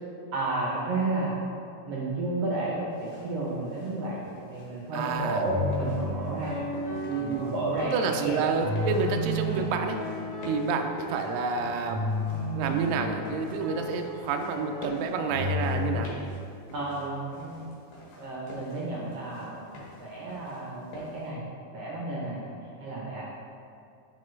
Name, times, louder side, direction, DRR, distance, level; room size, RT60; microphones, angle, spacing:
voice 1, 0.3-1.3 1.8-2.7 3.0-6.6 7.1-8.4 16.7-17.6 18.2-19.6 20.0-21.4 21.7-22.5 22.8-23.2, right 2 dB, 70° right, -4 dB, 1.5 m, -32 dB
sound 1, 2.9-21.3, left 1 dB, 80° left, 2.9 m, -46 dB
voice 2, 4.9-5.4 7.1-7.5 7.8-10.0 10.5-12.0 12.5-16.1, right 5 dB, 85° right, 5 dB, 1.5 m, -29 dB
sound 2, 5.4-8.1 8.6-11.2 11.9-15.9, left 1 dB, 40° left, 1.4 m, -33 dB
9.4 x 4.6 x 3.1 m, 2.5 s
omnidirectional pair, 3.7 m